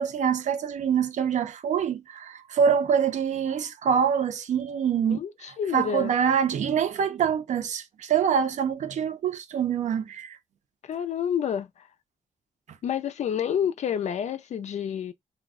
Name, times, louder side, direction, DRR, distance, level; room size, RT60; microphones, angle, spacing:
voice 1, 0.0-5.2 5.5-10.4, right 7 dB, 75° right, 0.4 m, -25 dB
voice 2, 5.0-6.1 10.8-11.9 12.8-15.1, left 8 dB, 70° left, 0.4 m, -29 dB
2.4 x 2.1 x 3.4 m
wide cardioid pair, 130°, 13 cm